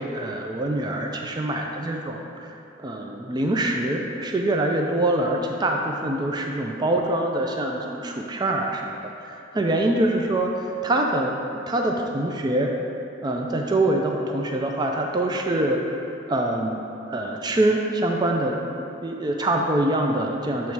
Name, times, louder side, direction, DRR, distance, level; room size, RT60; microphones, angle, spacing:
voice 1, 0.0-2.5 2.8-11.4 11.7-12.7 13.2-15.8 16.3-16.8 17.1-18.6 19.0-20.7, right 1 dB, 20° right, 1 dB, 0.3 m, -24 dB
7.2 x 3.1 x 4.5 m, 2.8 s
head